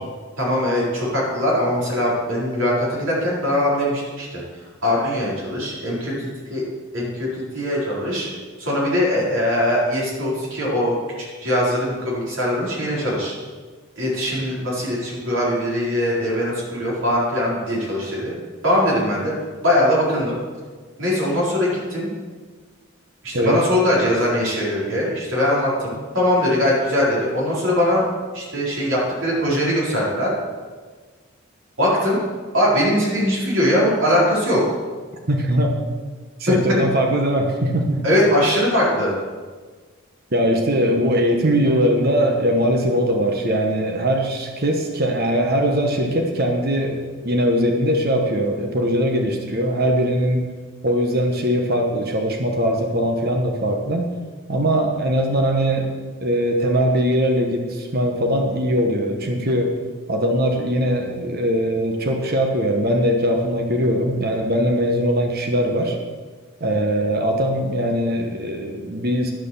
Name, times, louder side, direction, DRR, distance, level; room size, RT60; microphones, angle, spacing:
voice 1, 0.4-4.4 4.8-6.6 6.9-8.3 8.6-10.9 11.4-13.3 14.0-18.3 18.6-19.3 19.6-20.4 21.0-22.1 23.2-28.0 28.3-30.3 31.8-32.2 32.5-34.6 36.5-36.7 38.0-39.1, left 1 dB, 60° right, -5 dB, 4.0 m, -21 dB
voice 2, 23.3-23.6 25.5-25.6 35.3-35.7 36.4-38.0 40.3-50.4 50.8-54.1 54.5-55.9 56.2-59.8 60.1-66.0 66.6-69.3, equal, 45° right, 2 dB, 1.2 m, -21 dB
11.5 x 6.4 x 7.0 m, 1.5 s
head